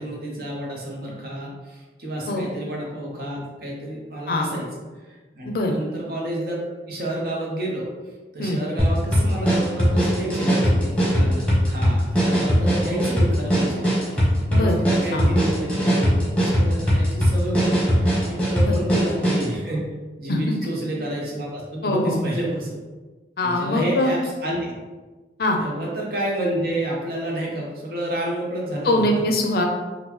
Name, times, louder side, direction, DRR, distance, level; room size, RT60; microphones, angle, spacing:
voice 1, 0.0-4.7 5.0-6.6 6.9-7.9 8.3-14.2 14.5-19.8 20.2-22.8 23.4-24.7 25.6-29.0, right 1 dB, 55° right, -3 dB, 0.8 m, -29 dB
sound 1, 8.8-19.5, equal, 5° left, 1.0 m, -20 dB
voice 2, 21.8-22.3 23.4-24.1 25.4-25.6 28.8-29.7, left 1 dB, 55° left, 2 dB, 0.5 m, -22 dB
3.7 x 2.2 x 3.0 m, 1.3 s
head